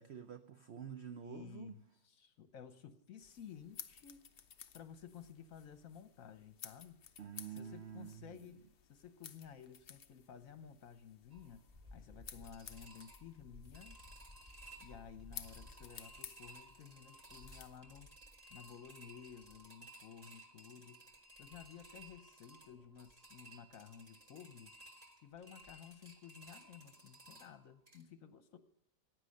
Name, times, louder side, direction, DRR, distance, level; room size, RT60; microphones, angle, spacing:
voice 1, 0.0-1.7 7.2-8.5, right 8 dB, 70° right, 8 dB, 0.6 m, -48 dB
voice 2, 1.2-4.3 4.7-7.0 7.4-11.6 11.9-14.0 14.8-18.1 18.5-21.1 21.4-24.7 25.2-28.6, left 8 dB, 55° left, 10 dB, 1.1 m, -54 dB
sound 1, 3.2-17.8, left 8 dB, 70° left, 0.5 m, -56 dB
sound 2, 11.3-28.0, right 1 dB, 20° right, 1.6 m, -57 dB
15.5 x 9.6 x 6.4 m, 0.73 s
omnidirectional pair, 1.9 m